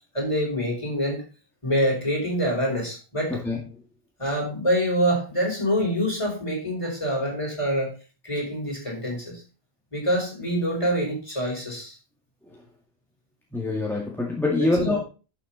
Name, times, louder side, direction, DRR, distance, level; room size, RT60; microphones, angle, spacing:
voice 1, 0.1-1.2 1.6-3.4 4.2-7.9 8.2-9.4 9.9-11.9 14.6-15.0, equal, 30° left, -2 dB, 4.8 m, -26 dB
voice 2, 13.5-15.0, left 2 dB, ahead, -2 dB, 2.0 m, -24 dB
11.5 x 7.1 x 4.1 m, 0.34 s
omnidirectional pair, 1.0 m